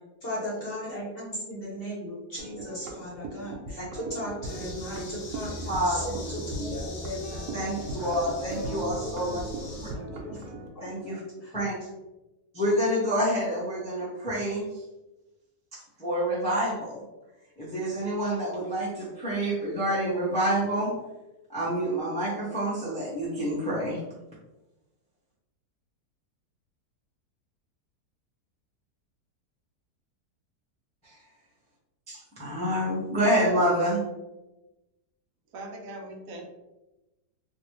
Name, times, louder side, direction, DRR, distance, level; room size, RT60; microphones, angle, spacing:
voice 1, 0.2-8.1 9.0-10.9 11.4-11.5 11.8-11.9, equal, 45° left, -6 dB, 0.9 m, -38 dB
sound 1, 2.4-10.7, right 2 dB, 90° right, 1.2 m, -38 dB
sound 2, 4.4-9.9, left 1 dB, 90° left, 1.5 m, -43 dB
voice 2, 5.7-6.8 7.5-9.4 10.8-11.2 11.5-11.7 12.5-14.6 15.7-17.0 17.6-20.9 21.5-24.0 31.0-31.1 32.1-34.0, equal, 5° left, -9 dB, 0.7 m, -28 dB
voice 3, 7.8-8.1 35.5-36.4, right 2 dB, 70° right, 1 dB, 1.0 m, -42 dB
3.2 x 2.5 x 3.0 m, 1.0 s
omnidirectional pair, 1.6 m